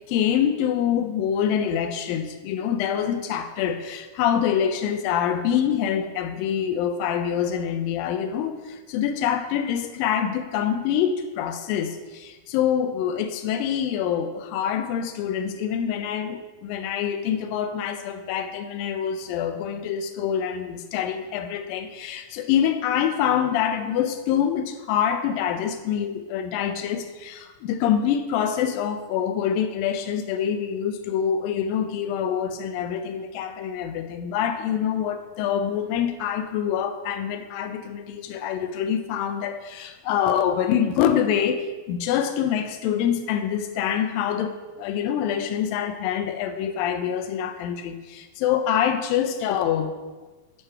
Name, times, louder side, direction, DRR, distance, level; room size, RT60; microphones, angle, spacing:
voice 1, 0.1-50.0, left 9 dB, 90° left, 8 dB, 2.3 m, -25 dB
9.7 x 3.4 x 5.4 m, 1.2 s
omnidirectional pair, 4.0 m